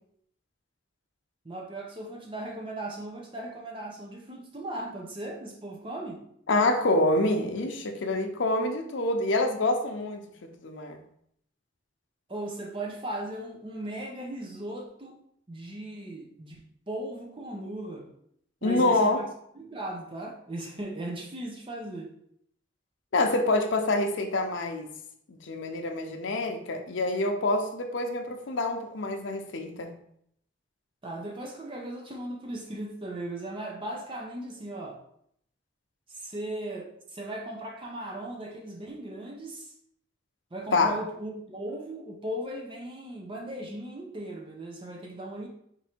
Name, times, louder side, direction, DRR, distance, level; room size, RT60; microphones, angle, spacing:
voice 1, 1.4-6.2 12.3-15.2 15.5-16.6 16.9-18.1 18.6-19.2 19.6-22.2 31.0-35.0 36.1-39.7 40.5-45.5, right 1 dB, 25° right, 0 dB, 0.5 m, -37 dB
voice 2, 6.5-11.0 18.6-19.2 23.1-24.9 25.3-29.9 40.7-41.0, left 2 dB, 75° left, 5 dB, 0.6 m, -26 dB
4.4 x 2.6 x 4.3 m, 0.70 s
head